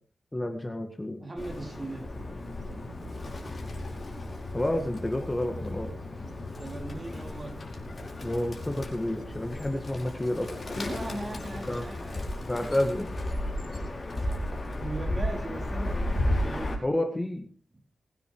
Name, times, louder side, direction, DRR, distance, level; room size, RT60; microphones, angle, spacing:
voice 1, 0.3-1.2 4.5-5.9 8.2-10.5 11.7-11.9 12.5-13.1 16.8-17.4, left 1 dB, 15° left, 5 dB, 1.9 m, -30 dB
voice 2, 1.2-2.1 6.6-7.6 10.7-12.2 14.2-14.3 14.8-16.8, right 2 dB, 25° right, 3 dB, 3.6 m, -38 dB
Bird, 1.4-16.8, left 1 dB, 40° left, 5.0 m, -34 dB
21.5 x 9.7 x 4.8 m, 0.39 s
wide cardioid pair, 120°, 0 cm